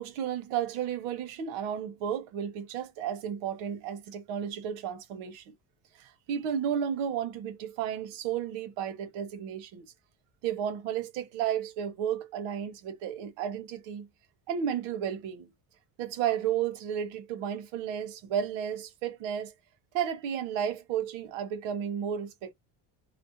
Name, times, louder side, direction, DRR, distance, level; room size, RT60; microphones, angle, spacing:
voice 1, 0.0-5.6 6.0-9.9 10.4-14.1 14.5-15.5 16.0-19.5 19.9-22.5, right 9 dB, 80° right, 0.8 m, -33 dB
2.4 x 2.0 x 2.7 m
cardioid pair, 120°, 48 cm